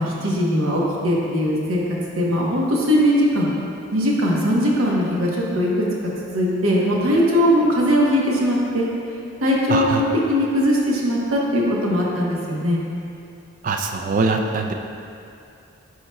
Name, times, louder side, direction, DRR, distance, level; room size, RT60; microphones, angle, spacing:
voice 1, 0.0-1.8 2.2-3.5 3.9-5.7 6.3-8.9 9.4-12.8, equal, 80° right, -4 dB, 1.0 m, -20 dB
voice 2, 9.7-10.0 13.6-14.7, right 3 dB, 40° right, 4 dB, 0.3 m, -22 dB
9.4 x 4.7 x 2.2 m, 2.6 s
head